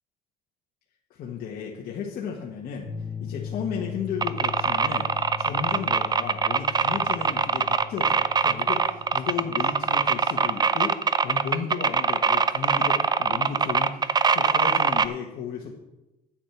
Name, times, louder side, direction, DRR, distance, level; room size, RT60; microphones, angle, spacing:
voice 1, 1.2-2.9 3.2-15.8, left 6 dB, 65° left, -2 dB, 1.5 m, -34 dB
sound 1, 2.8-10.1, left 8 dB, 40° left, 3.1 m, -39 dB
sound 2, 4.2-15.0, right 5 dB, 25° right, 0.5 m, -22 dB
9.0 x 8.6 x 5.9 m, 0.97 s
cardioid pair, 110°, 17 cm